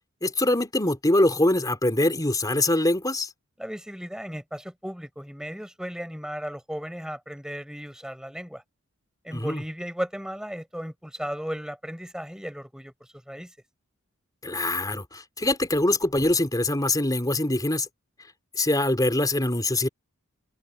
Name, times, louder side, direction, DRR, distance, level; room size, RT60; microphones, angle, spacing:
voice 1, 0.2-3.3 9.3-9.6 14.4-17.9 18.6-19.9, left 1 dB, 15° left, 3.9 m, -23 dB
voice 2, 3.6-8.6 9.2-12.9 13.3-13.5, equal, 5° right, 7.9 m, -35 dB
open air
head